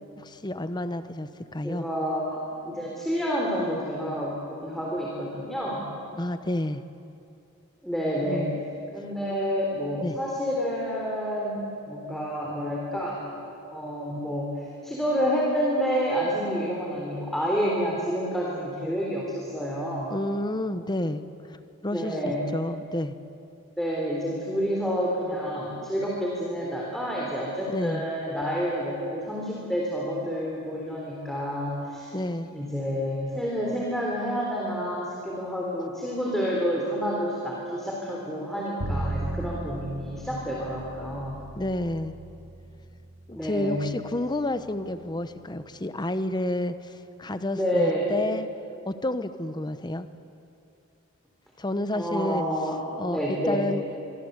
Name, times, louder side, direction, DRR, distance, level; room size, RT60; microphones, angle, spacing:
voice 1, 0.2-1.8 6.2-6.8 8.3-8.6 10.0-10.2 20.1-21.2 21.8-23.1 27.7-28.0 32.1-32.5 41.6-42.1 43.3-48.5 48.9-50.1 51.6-52.4 53.0-53.8, left 1 dB, 20° left, 11 dB, 1.0 m, -30 dB
voice 2, 1.6-5.9 7.8-8.5 8.9-13.3 13.7-20.2 21.9-22.4 23.8-32.1 32.5-41.4 43.3-43.8 47.5-48.1 51.9-52.8 53.1-53.7, equal, ahead, -4 dB, 3.8 m, -29 dB
Bowed string instrument, 38.8-44.9, right 1 dB, 80° right, 2.1 m, -36 dB
25.5 x 24.5 x 8.1 m, 2.6 s
head